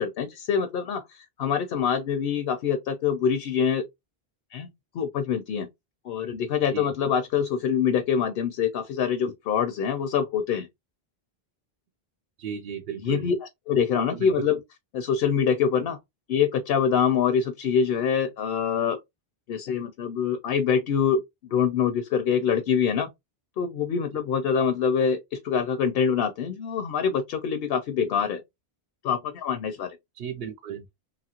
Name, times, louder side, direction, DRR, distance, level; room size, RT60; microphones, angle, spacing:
voice 1, 0.0-3.9 4.5-4.7 4.9-5.7 6.0-10.7 13.0-14.6 14.9-16.0 16.3-19.0 19.5-23.1 23.6-28.4 29.0-30.0, left 7 dB, 70° left, 0.8 m, -25 dB
voice 2, 12.4-13.3 13.9-14.3 30.2-30.8, right 8 dB, 75° right, 0.8 m, -35 dB
2.9 x 2.4 x 2.7 m
omnidirectional pair, 1.0 m